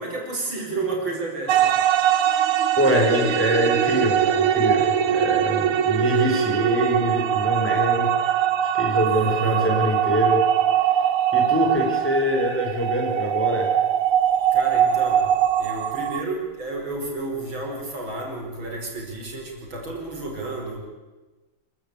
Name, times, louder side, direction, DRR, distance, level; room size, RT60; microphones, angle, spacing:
voice 1, 0.0-1.7 9.0-9.8 14.5-15.3 15.6-20.8, right 2 dB, 65° right, 0 dB, 5.7 m, -31 dB
sound 1, 1.5-16.2, right 10 dB, 90° right, 1.9 m, -22 dB
voice 2, 2.8-8.4 8.7-10.4 11.3-13.7, equal, 5° left, 0 dB, 4.9 m, -24 dB
26.0 x 15.0 x 8.5 m, 1.2 s
omnidirectional pair, 2.3 m